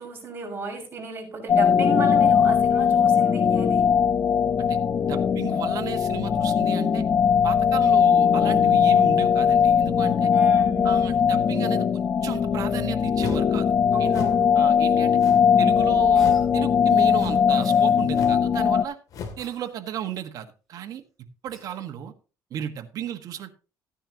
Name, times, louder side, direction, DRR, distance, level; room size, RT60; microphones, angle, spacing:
voice 1, 0.0-3.9 10.3-11.0 13.9-14.5, right 3 dB, 30° right, 1 dB, 5.9 m, -34 dB
sound 1, 1.5-18.8, left 7 dB, 35° left, 0.8 m, -20 dB
voice 2, 5.1-7.0 7.4-10.3 10.8-13.7 14.0-14.1 14.5-15.2 15.6-19.0 19.4-21.0 21.4-22.1 22.5-23.5, right 10 dB, 60° right, 7 dB, 1.4 m, -34 dB
sound 2, 13.2-13.5 14.1-14.4 15.2-15.6 16.1-16.5 17.1-17.5 18.1-18.4 19.1-19.4, left 5 dB, 55° left, 2.6 m, -36 dB
Cough, 16.1-16.5 17.6-18.0 19.4-19.7 21.5-21.8, equal, ahead, 5.4 m, -49 dB
15.0 x 10.0 x 2.9 m, 0.33 s
cardioid pair, 125°, 7 cm